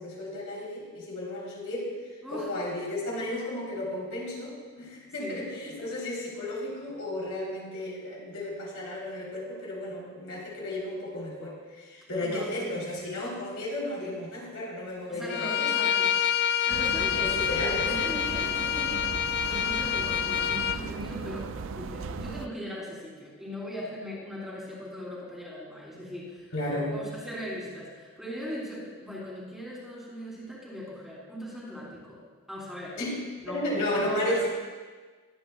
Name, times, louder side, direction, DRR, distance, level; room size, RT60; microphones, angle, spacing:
voice 1, 0.0-1.9 2.3-15.7 17.1-17.9 26.5-27.0 33.0-33.1 33.5-34.5, left 1 dB, 70° left, -5 dB, 3.6 m, -33 dB
voice 2, 12.2-13.1 14.0-14.2 15.1-16.2 16.4-19.2 19.5-26.5 26.9-32.2 32.5-33.0 33.4-33.6 33.9-34.5, equal, ahead, -6 dB, 3.4 m, -39 dB
Bowed string instrument, 15.3-20.8, left 9 dB, 45° left, 0.3 m, -27 dB
sound 1, 16.7-22.5, right 5 dB, 60° right, 0.4 m, -37 dB
22.0 x 9.7 x 2.3 m, 1.4 s
head